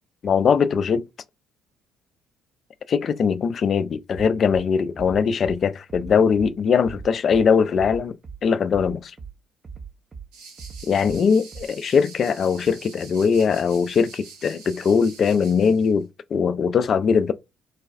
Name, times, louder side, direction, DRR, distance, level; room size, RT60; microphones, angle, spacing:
voice 1, 0.2-1.1 2.9-8.2 8.4-9.1 10.9-17.3, left 6 dB, 45° left, 0.3 m, -21 dB
Bass drum, 4.1-4.6 5.0-5.6 5.9-6.5 6.8-7.4 7.8-8.4 8.7-9.3 9.6-10.3 10.6-11.2 11.5-11.6, right 5 dB, 35° right, 0.5 m, -38 dB
sound 1, 10.3-15.9, right 4 dB, 70° right, 0.7 m, -45 dB
3.8 x 2.2 x 2.5 m
figure-of-eight pair, 50°, 0 cm